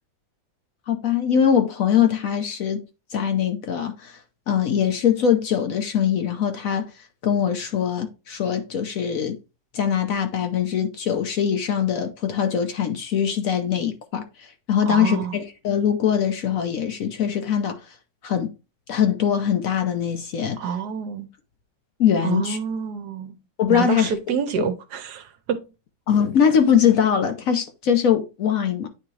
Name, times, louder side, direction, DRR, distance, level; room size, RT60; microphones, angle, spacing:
voice 1, 0.9-2.8 3.1-4.2 4.5-6.9 7.2-9.4 9.7-17.8 18.2-18.5 18.9-20.6 22.0-22.6 23.6-24.1 24.6-24.7 26.1-28.9, left 8 dB, 60° left, 1.0 m, -22 dB
voice 2, 14.8-15.3 20.6-21.3 22.2-23.4 23.7-25.6, right 7 dB, 70° right, 1.3 m, -27 dB
9.2 x 3.6 x 3.1 m
omnidirectional pair, 1.9 m